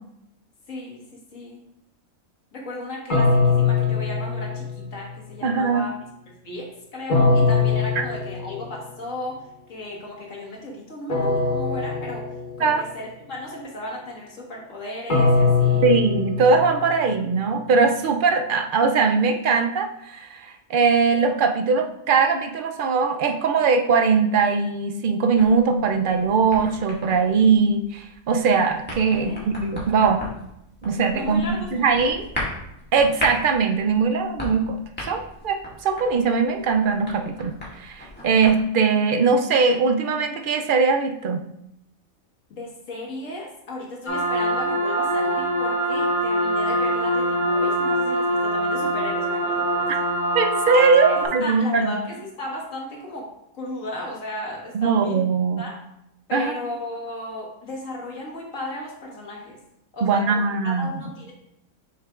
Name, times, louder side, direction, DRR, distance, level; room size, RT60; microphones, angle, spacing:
voice 1, 0.7-1.6 2.5-5.9 6.3-12.3 12.6-15.9 29.1-29.5 31.1-32.1 42.5-49.9 51.1-53.3 53.5-55.2 55.6-55.8 56.3-59.6 59.9-61.3, left 1 dB, 65° left, -2 dB, 1.8 m, -35 dB
sound 1, 3.1-5.1 7.1-8.9 11.1-12.9 15.1-17.3, left 4 dB, 35° left, 1.3 m, -22 dB
voice 2, 5.4-5.9 12.6-12.8 15.8-30.3 30.8-32.2 32.9-41.4 50.3-52.0 54.7-55.6 56.3-56.5 60.0-60.9, right 5 dB, 70° right, 5 dB, 0.4 m, -21 dB
sound 2, 25.3-38.6, left 1 dB, 5° left, 1.7 m, -37 dB
sound 3, 44.1-51.2, right 1 dB, 15° right, 1.2 m, -23 dB
6.6 x 6.4 x 2.4 m, 0.81 s
omnidirectional pair, 1.5 m